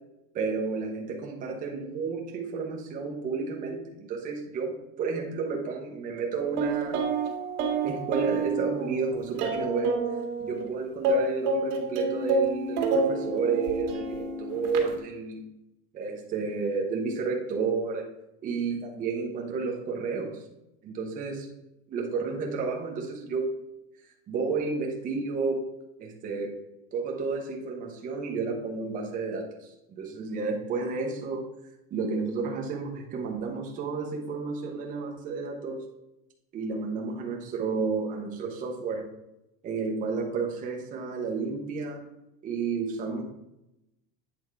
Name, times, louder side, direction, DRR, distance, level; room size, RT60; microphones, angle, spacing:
voice 1, 0.3-7.0 7.8-10.0 10.4-15.4 15.9-18.1 18.4-20.4 20.8-21.5 21.9-23.6 24.3-25.7 26.0-26.6 26.9-29.7 30.0-31.5 31.9-35.8 36.5-39.1 39.6-42.0 42.4-43.2, right 4 dB, 15° right, 0 dB, 0.7 m, -31 dB
sound 1, 6.6-10.6 11.0-15.0, right 3 dB, 65° right, 1.8 m, -28 dB
8.6 x 3.5 x 4.6 m, 0.89 s
supercardioid pair, 170°, 50 cm